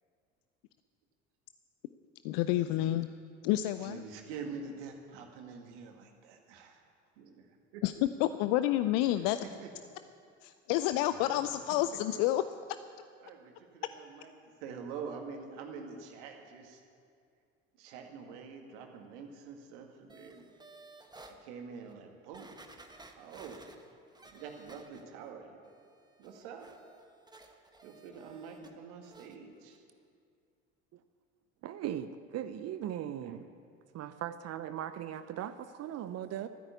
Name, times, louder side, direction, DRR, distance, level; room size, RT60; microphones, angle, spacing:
voice 1, 2.2-3.1 3.4-4.0 7.8-7.9 8.2-9.4 10.4-12.4, left 14 dB, 60° left, 12 dB, 0.6 m, -29 dB
voice 2, 3.8-6.8 7.2-7.8 9.6-9.7 11.7-11.8 12.1-12.2 13.2-14.3 14.6-16.8 17.8-20.5 21.3-22.6 23.1-23.6 24.2-25.6 26.2-26.7 27.8-29.8 33.2-33.5, right 5 dB, 65° right, 3 dB, 2.0 m, -46 dB
sound 1, 20.1-21.4 21.9-22.0 22.3-25.3 25.6-28.7 29.0-29.4 29.7-29.8, right 2 dB, 10° right, 1.4 m, -56 dB
voice 3, 31.6-33.4 33.9-36.5, right 10 dB, 45° right, 11 dB, 0.7 m, -38 dB
13.5 x 9.8 x 8.3 m, 2.4 s
figure-of-eight pair, 65°, 37 cm